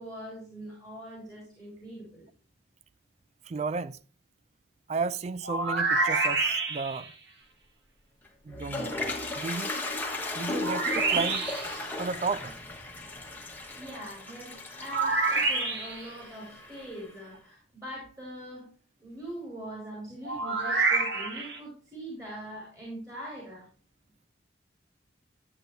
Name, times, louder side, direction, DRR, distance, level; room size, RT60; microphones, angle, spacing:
voice 1, 0.0-2.3 13.7-18.7 19.0-23.7, right 1 dB, 20° right, 3.1 m, -42 dB
voice 2, 3.5-4.0 4.9-7.1 8.4-8.9 9.3-9.7 10.3-11.5 12.0-12.5, right 4 dB, 35° right, 0.3 m, -33 dB
sound 1, 5.4-7.1 10.6-11.8 14.9-16.1 20.2-21.6, right 3 dB, 60° right, 1.3 m, -27 dB
Toilet flush, 8.2-17.1, left 2 dB, 10° left, 1.2 m, -36 dB
11.0 x 7.8 x 2.7 m
head